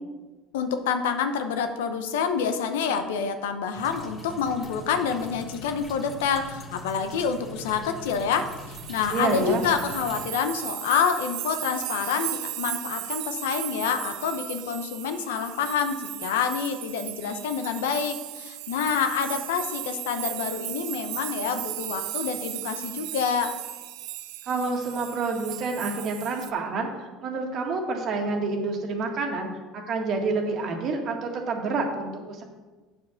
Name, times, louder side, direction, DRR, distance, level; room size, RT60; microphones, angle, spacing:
voice 1, 0.5-23.5, left 6 dB, 90° left, 7 dB, 0.8 m, -27 dB
sound 1, 3.7-10.2, left 1 dB, 30° left, 1.5 m, -42 dB
sound 2, 8.3-26.5, right 15 dB, 75° right, 0.5 m, -36 dB
voice 2, 9.1-9.6 24.4-32.4, right 3 dB, 50° right, 3 dB, 1.7 m, -28 dB
7.9 x 4.7 x 6.4 m, 1.3 s
supercardioid pair, 90°, 0 cm